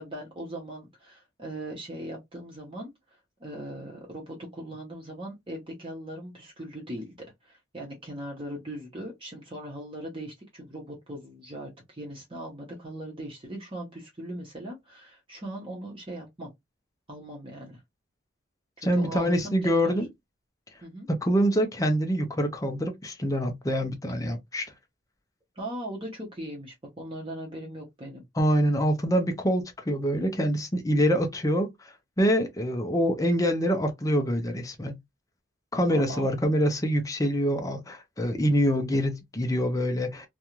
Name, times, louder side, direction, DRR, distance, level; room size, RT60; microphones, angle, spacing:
voice 1, 0.0-2.9 3.4-7.2 7.4-16.5 17.1-17.8 18.9-19.6 19.8-20.0 20.8-21.1 25.6-28.2 35.9-36.3, right 1 dB, 25° right, 0.8 m, -39 dB
voice 2, 18.8-20.1 21.1-24.7 28.4-35.0 35.7-40.3, equal, 15° left, 0.5 m, -25 dB
2.5 x 2.3 x 2.9 m
head